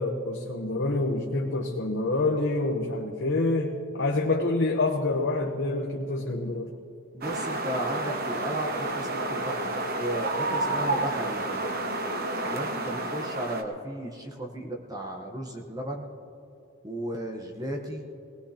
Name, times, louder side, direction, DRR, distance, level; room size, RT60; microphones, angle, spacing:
voice 1, 0.0-6.7, left 2 dB, 55° left, 1 dB, 0.9 m, -27 dB
voice 2, 7.1-11.6 12.4-16.1 16.8-18.0, right 1 dB, 15° right, 1 dB, 1.0 m, -35 dB
sound 1, 7.2-13.6, right 2 dB, 45° right, 1.0 m, -30 dB
19.5 x 19.0 x 2.9 m, 2.6 s
head